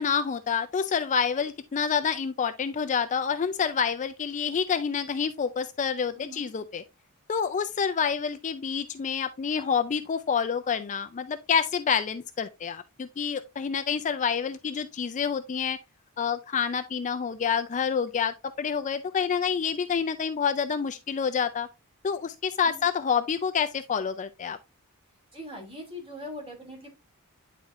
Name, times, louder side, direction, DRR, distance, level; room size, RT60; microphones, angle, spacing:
voice 1, 0.0-6.8 7.3-15.8 16.2-21.7 22.0-24.6, left 6 dB, 35° left, 0.4 m, -28 dB
voice 2, 6.1-6.5 22.6-22.9 25.3-26.9, left 1 dB, 25° right, 2.8 m, -41 dB
9.6 x 4.2 x 2.5 m
head